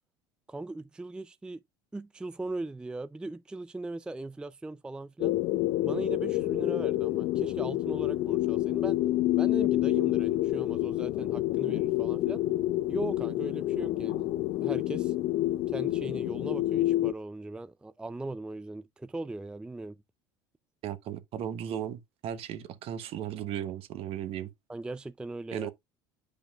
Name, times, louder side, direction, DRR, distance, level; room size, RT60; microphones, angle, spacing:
voice 1, 0.5-1.6 1.9-5.4 5.8-9.0 9.4-12.4 12.9-14.3 14.6-15.1 15.7-20.0 24.7-25.7, right 2 dB, 5° right, 0.3 m, -39 dB
sound 1, 5.2-17.1, left 15 dB, 55° left, 0.5 m, -28 dB
voice 2, 20.8-24.5 25.5-25.7, right 10 dB, 55° right, 1.0 m, -36 dB
8.9 x 5.1 x 2.4 m
hypercardioid pair, 90°, 12 cm